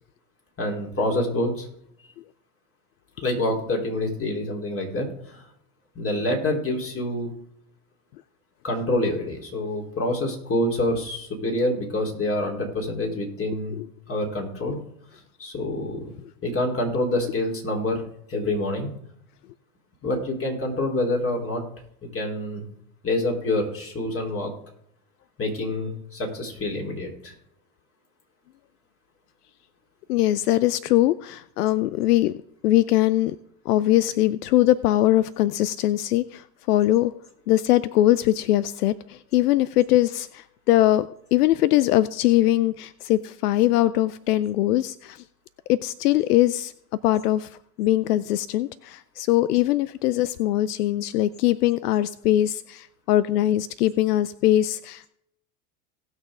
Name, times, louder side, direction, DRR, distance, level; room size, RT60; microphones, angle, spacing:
voice 1, 0.6-1.7 3.2-5.5 6.0-7.3 8.6-13.8 14.1-14.8 15.4-16.1 16.4-18.0 18.3-18.9 20.0-21.6 22.0-22.7 23.0-24.5 25.4-27.3, left 1 dB, 30° left, 0 dB, 3.8 m, -26 dB
voice 2, 30.1-32.3 32.6-33.4 33.7-37.1 37.5-45.2 45.7-46.7 47.0-55.1, left 14 dB, 80° left, 17 dB, 0.6 m, -21 dB
18.5 x 6.5 x 3.7 m, 0.72 s
hypercardioid pair, 85°, 45 cm